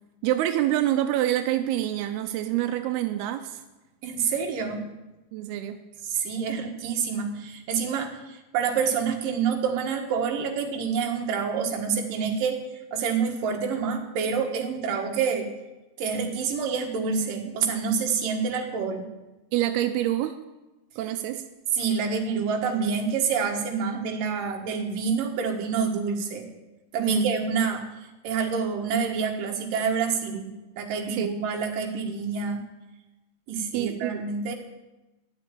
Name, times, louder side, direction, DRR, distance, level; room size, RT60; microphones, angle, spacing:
voice 1, 0.2-3.6 5.3-5.8 19.5-20.4 21.0-21.4 27.0-27.3 31.1-31.3 33.7-34.2, right 13 dB, 90° right, 7 dB, 2.7 m, -26 dB
voice 2, 4.0-4.8 6.1-12.6 12.9-15.5 16.0-19.0 21.8-26.5 26.9-27.8 28.2-30.5 30.8-32.6 33.5-34.5, right 6 dB, 65° right, 2 dB, 3.1 m, -27 dB
12.5 x 7.6 x 9.1 m, 1.0 s
omnidirectional pair, 4.5 m